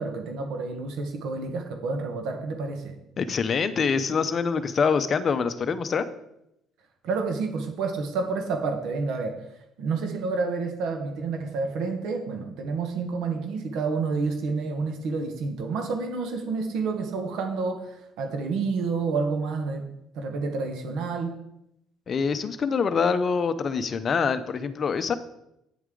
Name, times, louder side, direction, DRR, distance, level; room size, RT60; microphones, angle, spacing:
voice 1, 0.0-2.9 7.0-9.4 9.8-19.8 20.1-21.3, right 4 dB, 70° right, 4 dB, 1.3 m, -29 dB
voice 2, 3.2-6.1 22.1-25.1, left 5 dB, 30° left, 11 dB, 0.6 m, -25 dB
9.3 x 7.9 x 3.8 m, 0.82 s
cardioid pair, 155°, 0 cm